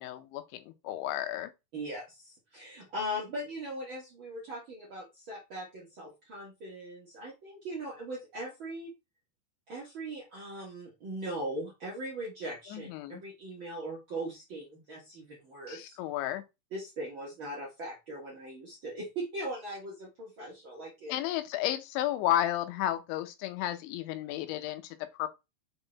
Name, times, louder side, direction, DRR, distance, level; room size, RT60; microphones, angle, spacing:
voice 1, 0.0-1.5 12.7-13.2 15.7-16.4 21.1-25.3, left 13 dB, 85° left, 3.2 m, -33 dB
voice 2, 1.7-8.9 9.7-15.9 16.7-21.1, right 1 dB, 55° right, 1.3 m, -40 dB
7.1 x 3.9 x 4.0 m
omnidirectional pair, 5.2 m